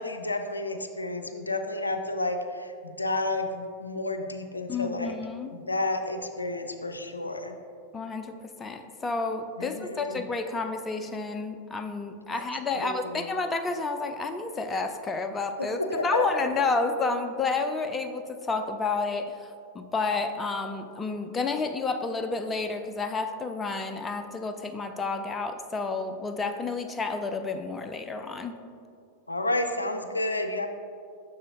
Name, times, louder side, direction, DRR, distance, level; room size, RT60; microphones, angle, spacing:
voice 1, 0.0-5.1 5.5-7.5 9.6-10.2 12.3-12.4 12.7-13.3 15.6-16.5 29.3-30.7, left 2 dB, 80° left, 7 dB, 0.4 m, -31 dB
voice 2, 4.7-5.5 7.9-19.5 19.7-28.6, left 3 dB, 15° left, 7 dB, 0.4 m, -30 dB
7.6 x 6.3 x 2.7 m, 2.4 s
figure-of-eight pair, 90°, 0 cm